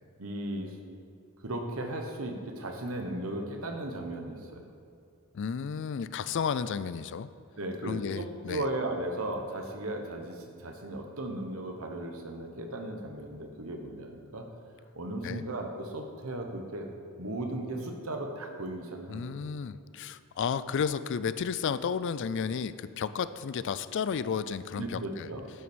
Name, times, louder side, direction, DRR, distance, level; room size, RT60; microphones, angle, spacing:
voice 1, 0.2-0.8 1.4-4.7 7.6-14.5 14.9-16.9 17.2-19.4 24.7-25.5, right 1 dB, 70° right, 3 dB, 1.3 m, -36 dB
voice 2, 5.3-7.3 7.8-8.7 15.2-15.4 19.1-25.3, left 6 dB, 55° left, 15 dB, 0.4 m, -32 dB
11.0 x 6.0 x 6.2 m, 2.5 s
head